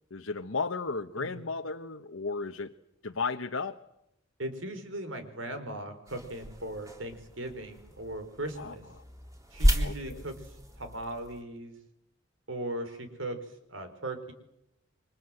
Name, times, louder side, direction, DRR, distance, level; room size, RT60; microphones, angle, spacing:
voice 1, 0.1-2.7 3.0-3.8 8.6-8.7 9.8-10.2, left 4 dB, 85° left, 5 dB, 1.2 m, -34 dB
voice 2, 4.4-8.8 9.5-11.7 12.5-14.3, right 1 dB, 75° right, 8 dB, 5.1 m, -38 dB
sound 1, 6.1-11.4, equal, 15° right, 3.7 m, -32 dB
29.5 x 25.0 x 7.9 m, 0.83 s
head